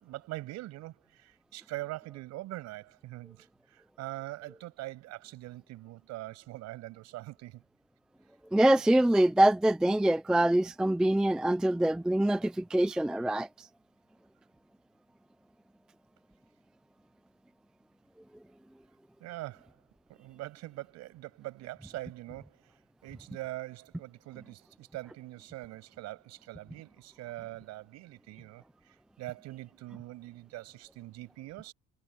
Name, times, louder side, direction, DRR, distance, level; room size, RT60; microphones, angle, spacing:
voice 1, 0.0-7.6 19.2-19.8 20.1-31.7, right 17 dB, 55° right, 6.6 m, -43 dB
voice 2, 8.5-13.5, right 1 dB, ahead, 0.4 m, -24 dB
cardioid pair, 170°, 31 cm